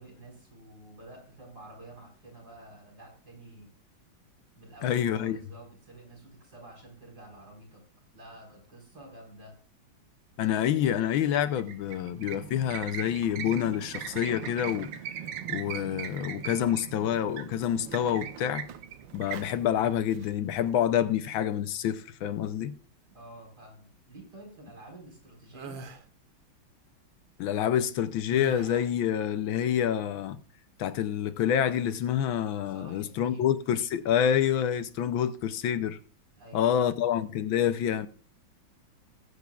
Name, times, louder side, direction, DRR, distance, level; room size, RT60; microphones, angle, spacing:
voice 1, 0.0-3.7 4.6-7.8 8.1-9.5 23.1-25.8 32.7-33.5 36.4-36.9, right 1 dB, 50° right, 5.3 m, -49 dB
voice 2, 4.8-5.4 10.4-14.9 15.5-18.7 19.1-22.7 27.4-30.4 30.8-36.0 36.5-38.1, left 9 dB, 80° left, 1.5 m, -27 dB
sound 1, 11.4-20.8, right 9 dB, 70° right, 1.5 m, -40 dB
sound 2, 25.5-26.0 28.3-29.0, right 3 dB, 90° right, 2.1 m, -42 dB
20.0 x 8.0 x 2.4 m
omnidirectional pair, 2.2 m